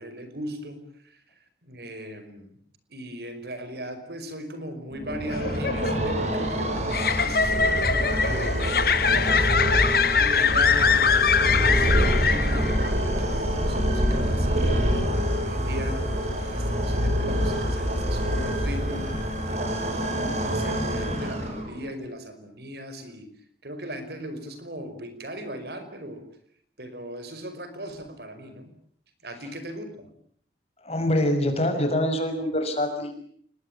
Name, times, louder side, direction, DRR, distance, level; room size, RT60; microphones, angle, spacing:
voice 1, 0.0-2.6 2.9-9.5 10.2-15.1 15.4-16.1 16.5-19.1 19.5-23.3 23.6-26.2 26.8-28.7 29.2-30.1, equal, 60° right, 9 dB, 5.3 m, -38 dB
sound 1, 4.9-21.9, equal, 40° right, 5.9 m, -26 dB
sound 2, 5.3-12.9, left 6 dB, 55° left, 1.4 m, -23 dB
voice 2, 30.8-33.1, left 1 dB, 35° left, 6 dB, 6.0 m, -25 dB
28.5 x 21.5 x 8.9 m, 0.63 s
head